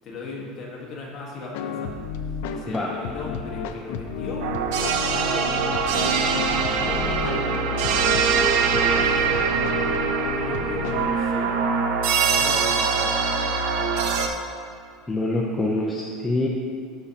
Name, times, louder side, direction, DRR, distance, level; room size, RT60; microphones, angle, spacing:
voice 1, 0.0-2.0 2.5-4.5 5.1-5.8 6.7-8.1 8.5-9.7 10.4-11.6 12.3-13.1, left 3 dB, 30° left, -4 dB, 1.4 m, -37 dB
sound 1, 1.5-11.1, left 5 dB, 70° left, 0.5 m, -32 dB
sound 2, 4.4-14.3, right 5 dB, 65° right, 0.7 m, -23 dB
voice 2, 15.1-16.5, left 2 dB, 5° left, -4 dB, 0.5 m, -25 dB
13.0 x 5.0 x 2.8 m, 2.3 s
cardioid pair, 180°, 0 cm